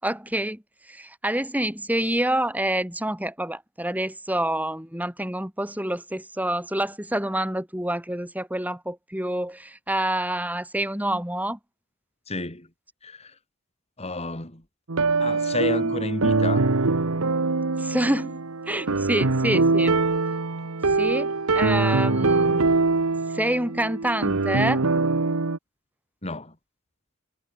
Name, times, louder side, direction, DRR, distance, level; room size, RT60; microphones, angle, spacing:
voice 1, 0.0-11.6 17.8-18.4 18.7-20.0 21.0-22.7 23.3-24.8, right 1 dB, 10° right, 6.9 m, -27 dB
voice 2, 12.3-12.7 13.0-13.4 14.0-14.6 15.2-16.7 26.2-26.5, left 2 dB, 30° left, 4.5 m, -31 dB
sound 1, 14.9-25.6, right 3 dB, 80° right, 1.2 m, -23 dB
head